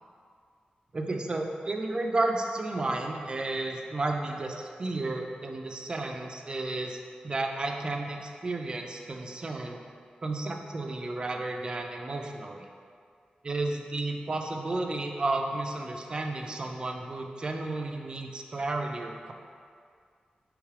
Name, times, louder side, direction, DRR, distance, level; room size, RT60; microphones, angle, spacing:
voice 1, 0.9-7.0 7.2-9.8 10.2-12.7 13.4-19.3, right 2 dB, 30° right, 3 dB, 0.3 m, -32 dB
3.2 x 3.1 x 4.7 m, 2.2 s
wide cardioid pair, 170°, 3 cm